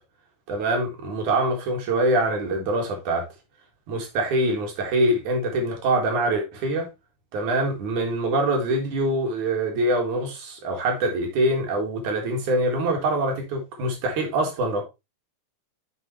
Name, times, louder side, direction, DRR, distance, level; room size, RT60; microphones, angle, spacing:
voice 1, 0.5-3.3 3.9-6.9 7.3-14.8, right 1 dB, 80° right, 3.3 m, -24 dB
6.8 x 6.5 x 3.2 m
omnidirectional pair, 3.4 m